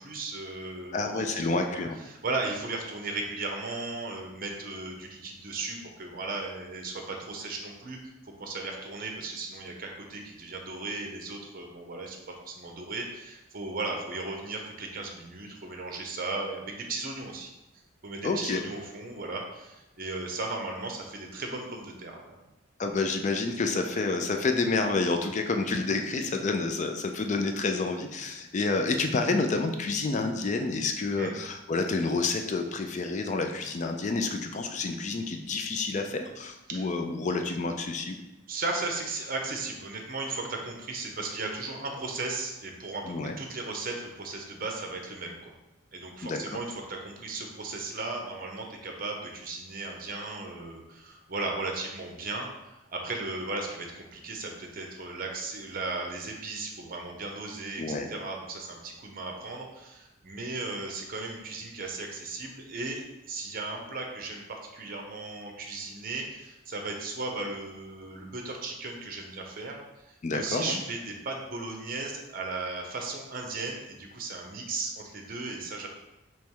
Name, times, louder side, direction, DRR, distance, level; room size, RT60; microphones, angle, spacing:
voice 1, 0.0-1.2 1.7-8.0 8.2-17.5 18.0-22.4 31.2-31.3 36.7-36.9 38.5-45.5 45.9-57.8 58.1-63.0 63.3-69.8 70.3-75.9, right 3 dB, 45° right, 2 dB, 0.7 m, -36 dB
voice 2, 0.9-2.0 18.2-18.6 22.8-38.2 43.1-43.4 46.2-46.4 57.8-58.1 70.2-70.8, left 3 dB, 35° left, 5 dB, 0.4 m, -29 dB
3.4 x 3.0 x 4.5 m, 0.97 s
head